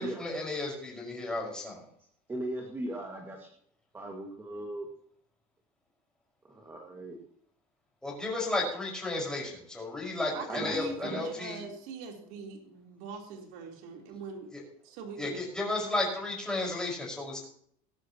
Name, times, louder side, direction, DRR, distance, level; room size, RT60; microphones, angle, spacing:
voice 1, 0.0-1.8 8.0-11.6 15.2-17.4, left 2 dB, 5° left, -2 dB, 5.4 m, -33 dB
voice 2, 2.3-3.5 3.9-4.9 6.5-7.2 10.5-11.2, right 1 dB, 15° right, 1 dB, 2.0 m, -38 dB
voice 3, 10.3-14.5 14.8-15.4, right 4 dB, 70° right, 1 dB, 3.8 m, -42 dB
21.0 x 11.5 x 3.0 m, 0.64 s
cardioid pair, 165°, 18 cm